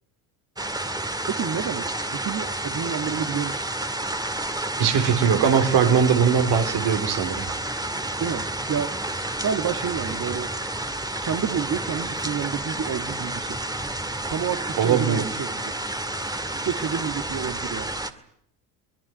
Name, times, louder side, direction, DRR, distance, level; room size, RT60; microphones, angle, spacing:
sound 1, 0.6-18.1, right 1 dB, 10° right, 2.1 m, -30 dB
voice 1, 1.3-1.9 2.1-3.7 8.2-8.9 9.4-10.5 11.2-13.6 14.3-15.7 16.5-17.9, right 7 dB, 40° right, 6 dB, 1.8 m, -29 dB
voice 2, 4.8-7.4 14.8-15.3, right 7 dB, 60° right, 7 dB, 3.6 m, -20 dB
23.5 x 20.5 x 9.1 m, 0.72 s
supercardioid pair, 80°, 46 cm